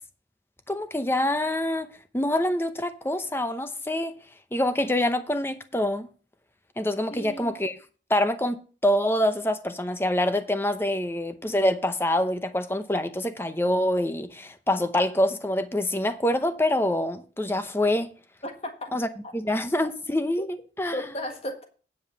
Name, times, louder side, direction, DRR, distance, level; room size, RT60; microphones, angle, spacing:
voice 1, 0.7-1.9 2.1-4.1 4.5-6.1 6.8-7.8 8.1-18.1 18.9-19.1 19.3-21.0, left 1 dB, 15° left, 0.7 m, -25 dB
voice 2, 7.1-7.5 18.4-18.9 19.2-19.3 20.4-20.5 20.9-21.7, equal, 35° left, 1.5 m, -35 dB
9.4 x 5.4 x 6.7 m
head